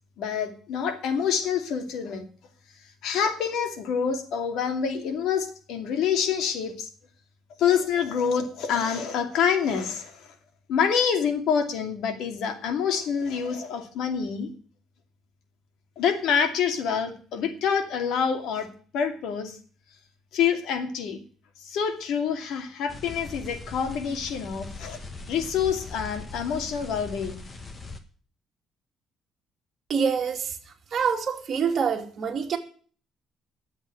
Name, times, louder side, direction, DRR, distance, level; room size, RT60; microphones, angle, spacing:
voice 1, 0.2-2.3 3.0-6.9 7.6-10.3 10.7-14.5 16.0-18.7 18.9-19.6 20.3-21.2 21.6-25.0 25.3-27.5, left 7 dB, 70° left, 2.6 m, -27 dB
sound 1, 22.9-28.0, left 3 dB, 20° left, 1.5 m, -40 dB
voice 2, 29.9-30.6 30.9-32.6, right 6 dB, 40° right, 2.6 m, -26 dB
11.0 x 7.9 x 9.8 m
cardioid pair, 160°, 0 cm